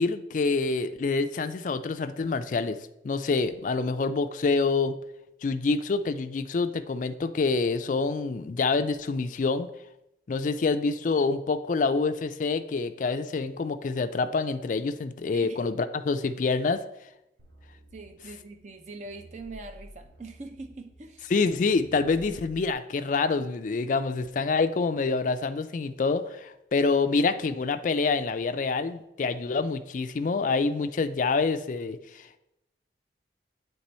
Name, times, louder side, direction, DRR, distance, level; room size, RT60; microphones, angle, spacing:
voice 1, 0.0-5.0 5.4-9.7 10.3-16.8 21.3-32.4, left 4 dB, 45° left, 10 dB, 0.3 m, -27 dB
sound 1, 17.4-22.7, equal, 90° right, 1.1 m, -51 dB
voice 2, 17.9-21.3, right 3 dB, 40° right, 7 dB, 0.5 m, -42 dB
8.1 x 3.4 x 4.2 m, 0.89 s
head